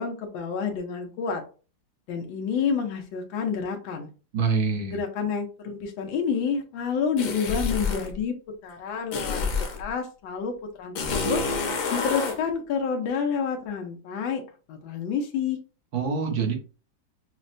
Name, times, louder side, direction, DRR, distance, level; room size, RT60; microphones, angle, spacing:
voice 1, 0.0-1.4 2.1-4.1 4.9-8.3 8.6-9.4 9.8-11.4 11.9-15.6, left 6 dB, 90° left, 3 dB, 1.4 m, -29 dB
voice 2, 4.3-5.0 15.9-16.5, right 5 dB, 60° right, 3 dB, 1.3 m, -25 dB
sound 1, 7.2-8.1 9.1-9.8 10.9-12.4, left 4 dB, 65° left, 1.3 m, -28 dB
6.0 x 2.1 x 2.5 m, 0.35 s
omnidirectional pair, 2.0 m